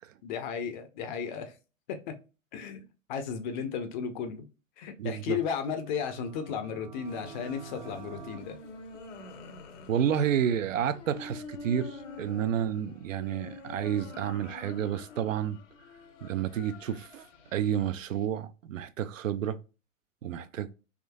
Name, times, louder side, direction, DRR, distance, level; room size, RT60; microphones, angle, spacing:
voice 1, 0.2-1.5 1.9-2.1 2.5-2.8 3.1-4.5 4.8-8.6, left 7 dB, 35° left, 0.6 m, -34 dB
voice 2, 5.0-5.4 9.9-15.6 16.2-17.3 17.5-19.6 20.2-20.7, right 9 dB, 75° right, 0.5 m, -30 dB
sound 1, 5.8-8.4, right 5 dB, 40° right, 0.6 m, -46 dB
sound 2, 7.0-18.3, left 3 dB, 65° left, 0.9 m, -47 dB
3.6 x 2.6 x 2.2 m
figure-of-eight pair, 110°, 40 cm